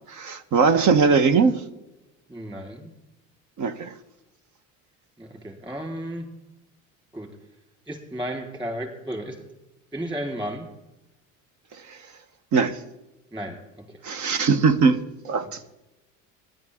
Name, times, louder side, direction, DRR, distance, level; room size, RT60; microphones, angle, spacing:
voice 1, 0.1-1.6 3.6-3.9 11.9-12.0 12.5-12.8 14.0-15.0 15.2-15.7, right 5 dB, 50° right, 1.1 m, -20 dB
voice 2, 2.3-2.9 5.2-6.3 7.1-7.3 7.9-9.4 9.9-10.7 13.3-13.6, equal, 15° right, 3.9 m, -33 dB
17.0 x 10.5 x 3.7 m
supercardioid pair, 85°, 38 cm